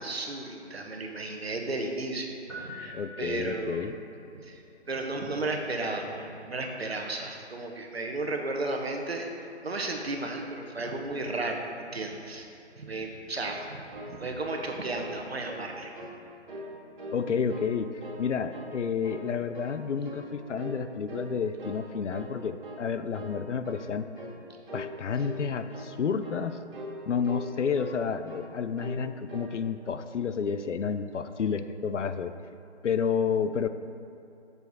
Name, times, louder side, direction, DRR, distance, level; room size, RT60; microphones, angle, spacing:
voice 1, 0.0-3.9 4.3-4.6 4.9-9.3 9.6-11.6 11.9-12.5 12.8-15.9, right 2 dB, 60° right, 2 dB, 1.0 m, -34 dB
sound 1, 2.5-4.0, left 1 dB, 25° right, 1.7 m, -44 dB
voice 2, 2.9-3.9 17.1-24.1 24.7-26.6 27.1-32.4 32.8-33.7, left 6 dB, 85° left, 11 dB, 0.5 m, -30 dB
sound 2, 13.4-14.7 14.9-15.2 15.4-16.1 16.5-17.2 17.5-18.2 18.5-18.7 19.0-19.8 20.0-20.3 20.6-20.8 21.1-21.8 22.1-22.3 22.6-22.9 23.1-23.4 23.6-23.9 24.2-24.4 24.7-24.9 25.2-25.4 25.7-25.9 26.2-26.4 26.7-27.0 27.2-28.0 28.3-28.5 28.8-29.0 29.3-29.5, equal, 45° right, 1.6 m, -41 dB
7.2 x 6.8 x 4.0 m, 2.7 s
hypercardioid pair, 180°, 35 cm